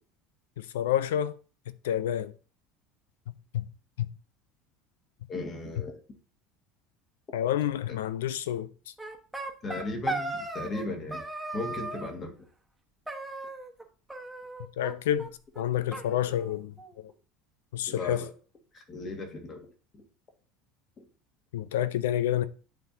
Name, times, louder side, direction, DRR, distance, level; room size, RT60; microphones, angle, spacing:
voice 1, 0.6-1.3 1.8-2.3 3.3-3.7 4.0-4.1 7.3-8.7 14.8-15.3 15.6-17.1 17.7-18.2 21.5-22.4, left 11 dB, 75° left, 0.4 m, -29 dB
voice 2, 5.3-6.0 9.6-11.2 11.5-12.5 17.9-18.3 18.7-19.7 19.9-20.1 21.0-21.1, left 2 dB, 35° left, 1.7 m, -36 dB
sound 1, 9.0-10.9 11.1-12.1 13.1-13.8 14.1-14.9 15.2-15.3 15.5-15.6 15.9-17.0, right 2 dB, 5° right, 1.2 m, -37 dB
10.0 x 3.6 x 2.7 m
hypercardioid pair, 75°, 0 cm